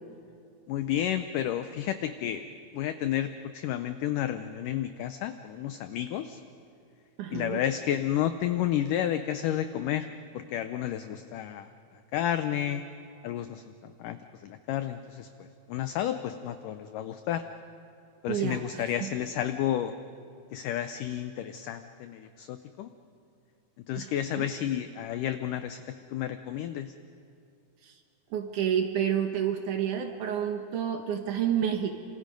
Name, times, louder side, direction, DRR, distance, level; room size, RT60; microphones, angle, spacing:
voice 1, 0.7-2.4 2.7-6.4 7.3-10.1 10.3-11.7 12.1-12.8 13.2-17.4 18.2-19.9 20.5-22.9 23.9-25.8 26.1-26.9, left 11 dB, 85° left, 9 dB, 1.8 m, -31 dB
voice 2, 7.2-7.6 18.3-19.2 24.0-24.5 27.8-28.0 28.3-31.9, right 9 dB, 65° right, 5 dB, 2.1 m, -30 dB
27.0 x 26.5 x 5.2 m, 2.4 s
omnidirectional pair, 4.6 m